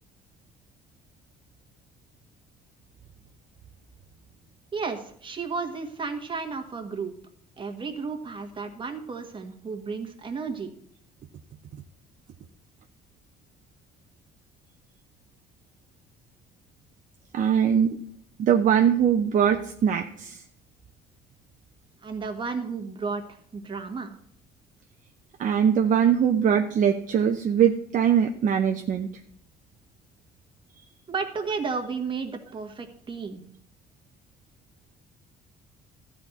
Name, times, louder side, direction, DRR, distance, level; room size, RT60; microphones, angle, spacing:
voice 1, 4.7-7.1 7.6-10.7 22.0-24.1 31.1-33.4, right 4 dB, 30° right, 5 dB, 1.7 m, -33 dB
voice 2, 17.3-18.0 18.4-20.4 25.4-29.1, right 8 dB, 50° right, 5 dB, 0.7 m, -22 dB
12.5 x 4.4 x 7.9 m, 0.64 s
cardioid pair, 110°, 17 cm